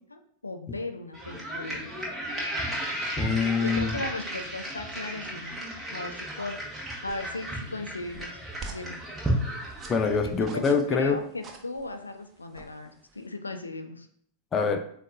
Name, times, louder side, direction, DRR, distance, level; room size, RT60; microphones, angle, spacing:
voice 1, 0.1-1.9 3.6-5.6 5.9-8.4 8.7-9.0 10.4-14.1, left 2 dB, 80° left, 6 dB, 0.5 m, -37 dB
sound 1, 1.1-10.4, right 1 dB, 10° right, 1.2 m, -34 dB
voice 2, 3.2-3.9 9.9-11.2 14.5-14.8, left 5 dB, 25° left, 6 dB, 0.4 m, -25 dB
sound 2, 7.1-13.3, right 4 dB, 25° right, 0.7 m, -48 dB
7.3 x 2.5 x 2.5 m, 0.64 s
figure-of-eight pair, 90°, 0 cm